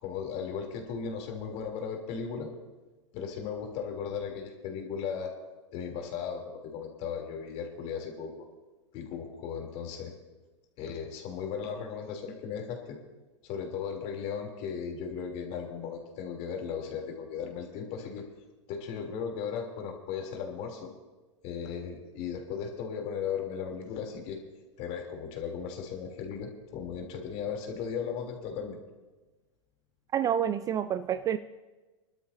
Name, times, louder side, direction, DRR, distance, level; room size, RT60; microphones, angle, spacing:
voice 1, 0.0-2.5 3.1-5.3 5.7-8.3 8.9-10.1 10.8-13.0 13.4-18.2 18.7-20.9 21.4-24.4 24.8-28.8, left 6 dB, 45° left, 1 dB, 3.3 m, -36 dB
voice 2, 30.1-31.4, right 9 dB, 20° right, 13 dB, 0.3 m, -28 dB
27.5 x 12.5 x 2.8 m, 1.2 s
hypercardioid pair, 115°, 16 cm